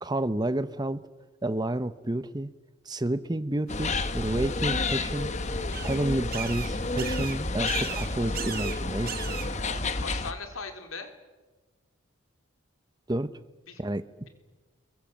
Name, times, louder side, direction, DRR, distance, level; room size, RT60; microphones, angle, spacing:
voice 1, 0.0-1.0 1.4-2.5 2.9-5.3 5.8-9.3 13.1-13.3 13.8-14.0, right 1 dB, 20° right, 13 dB, 0.8 m, -30 dB
sound 1, 3.7-10.3, left 3 dB, 35° left, 1.2 m, -30 dB
sound 2, 3.7-9.8, right 8 dB, 45° right, 1.0 m, -40 dB
voice 2, 9.6-11.1 13.7-13.8, left 4 dB, 80° left, 5 dB, 3.7 m, -39 dB
25.5 x 23.0 x 7.5 m, 1.2 s
head